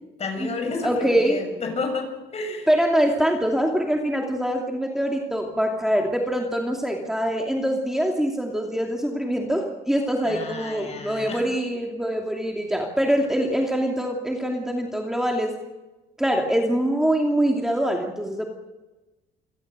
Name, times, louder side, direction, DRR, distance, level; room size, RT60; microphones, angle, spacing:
voice 1, 0.2-2.7 10.2-11.4, left 3 dB, 40° left, 5 dB, 7.0 m, -31 dB
voice 2, 0.8-1.4 2.7-15.5 16.2-18.5, equal, 5° right, 1 dB, 2.7 m, -24 dB
27.5 x 17.5 x 6.7 m, 1.1 s
cardioid pair, 110°, 17 cm